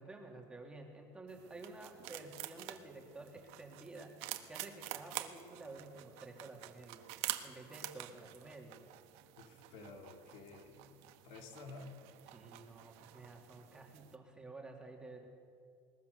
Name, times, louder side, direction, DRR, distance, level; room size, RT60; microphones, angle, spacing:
voice 1, 0.0-4.2 4.5-7.1 7.4-8.8 12.3-15.2, right 2 dB, 10° right, 0 dB, 2.6 m, -51 dB
sound 1, 1.3-14.2, right 15 dB, 65° right, 1.4 m, -48 dB
voice 2, 9.4-11.9, left 3 dB, 60° left, 3 dB, 3.3 m, -52 dB
21.0 x 21.0 x 6.7 m, 2.3 s
cardioid pair, 145°, 11 cm